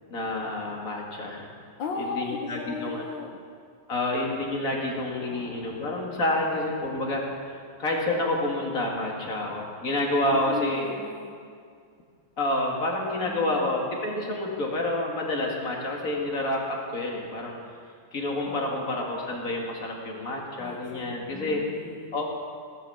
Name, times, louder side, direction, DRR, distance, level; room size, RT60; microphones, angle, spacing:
voice 1, 0.1-1.5 2.0-3.0 3.9-7.3 7.8-10.9 12.4-17.6 18.1-21.6 22.1-22.2, left 1 dB, 45° left, -1 dB, 2.5 m, -28 dB
voice 2, 1.8-3.4 5.3-5.9 10.2-11.3 12.9-13.7 18.4-18.8 20.6-22.2, left 4 dB, 70° left, 0 dB, 1.7 m, -37 dB
17.0 x 9.3 x 7.0 m, 2.2 s
omnidirectional pair, 2.1 m